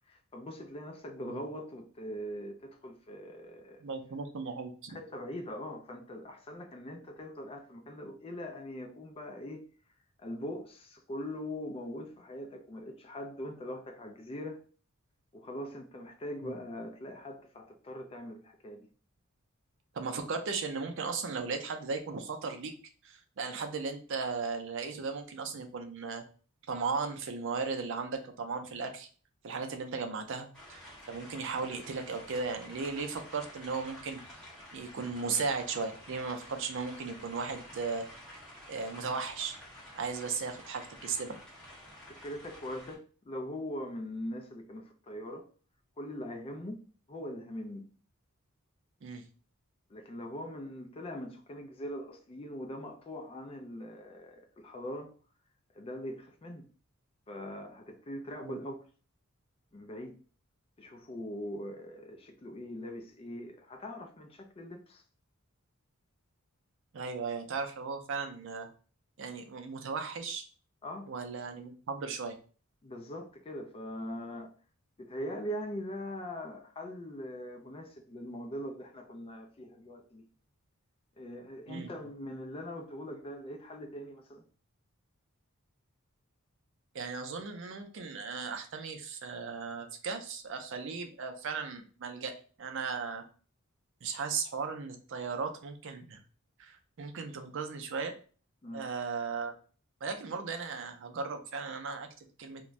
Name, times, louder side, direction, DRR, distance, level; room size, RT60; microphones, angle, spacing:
voice 1, 0.1-3.9 4.9-9.6 10.2-14.6 15.3-18.9 42.1-45.5 46.0-46.8 47.1-47.8 49.9-55.1 55.7-56.7 57.3-58.8 59.7-60.2 60.8-65.0 70.8-71.1 72.8-74.5 75.0-80.2 81.2-84.4 98.6-98.8, equal, 25° left, 0.4 m, -41 dB
voice 2, 3.8-5.0 16.4-16.5 19.9-22.7 23.0-26.2 26.7-29.1 29.4-30.8 31.1-34.2 34.7-38.1 38.7-39.6 39.9-41.4 49.0-49.2 58.4-58.6 66.9-68.7 69.2-70.4 71.1-72.4 81.7-81.9 86.9-92.3 92.6-93.2 94.0-96.2 96.6-98.1 98.7-99.5 100.0-102.1 102.4-102.6, right 4 dB, 60° right, 0.5 m, -36 dB
sound 1, 30.5-43.0, equal, 5° left, 1.1 m, -50 dB
2.5 x 2.2 x 3.0 m
head